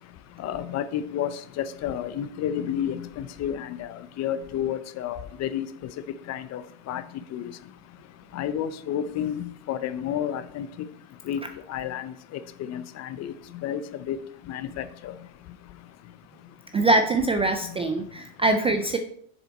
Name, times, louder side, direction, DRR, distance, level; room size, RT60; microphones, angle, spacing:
voice 1, 0.4-1.3 1.6-5.7 6.3-6.6 6.9-7.0 7.3-7.5 8.3-10.7 11.3-11.4 11.7-13.3 13.6-13.8 14.1-14.2 14.5-15.1, left 10 dB, 40° left, 13 dB, 0.6 m, -30 dB
voice 2, 16.7-19.0, right 2 dB, 15° right, 6 dB, 0.3 m, -23 dB
7.1 x 6.8 x 4.2 m, 0.65 s
supercardioid pair, 125°, 43 cm